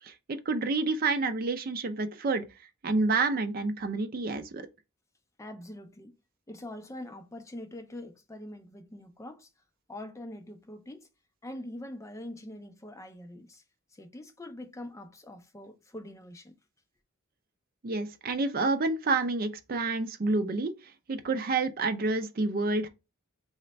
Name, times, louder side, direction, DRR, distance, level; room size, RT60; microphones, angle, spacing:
voice 1, 0.0-2.4 2.8-4.7 17.8-20.7 21.1-22.9, right 3 dB, 45° right, 0.4 m, -29 dB
voice 2, 5.4-6.1 6.5-9.5 9.9-11.1 11.4-13.6 13.9-16.5, left 1 dB, 15° left, 0.4 m, -43 dB
3.2 x 2.1 x 3.9 m
head